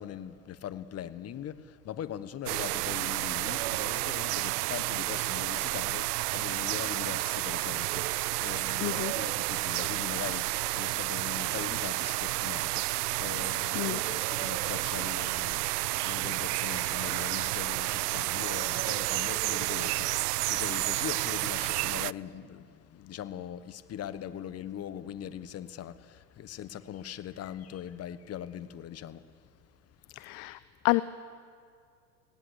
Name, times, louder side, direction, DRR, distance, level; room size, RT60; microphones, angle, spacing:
voice 1, 0.0-15.7 16.0-29.2, left 10 dB, 30° left, 1.2 m, -41 dB
sound 1, 2.5-22.1, right 20 dB, 65° right, 0.6 m, -31 dB
voice 2, 8.8-9.1 13.7-14.0 30.2-30.6 30.8-31.0, left 24 dB, 45° left, 0.7 m, -28 dB
20.0 x 17.5 x 8.1 m
hypercardioid pair, 100°, 49 cm